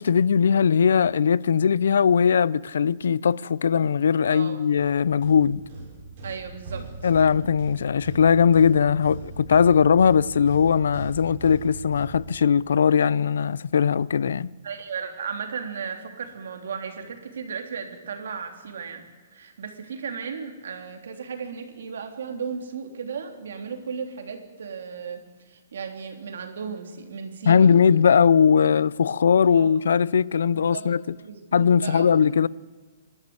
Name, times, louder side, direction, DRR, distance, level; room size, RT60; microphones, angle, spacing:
voice 1, 0.0-5.6 7.0-14.5 27.4-31.0 31.5-32.5, left 7 dB, 80° left, 0.5 m, -20 dB
voice 2, 4.3-4.6 6.2-7.1 14.6-19.0 19.3-28.0 29.5-29.8 30.5-30.9 31.2-32.1, right 6 dB, 70° right, 3.3 m, -35 dB
sound 1, 4.8-12.8, right 3 dB, 30° right, 7.8 m, -39 dB
27.5 x 13.0 x 7.9 m
hypercardioid pair, 180°, 0 cm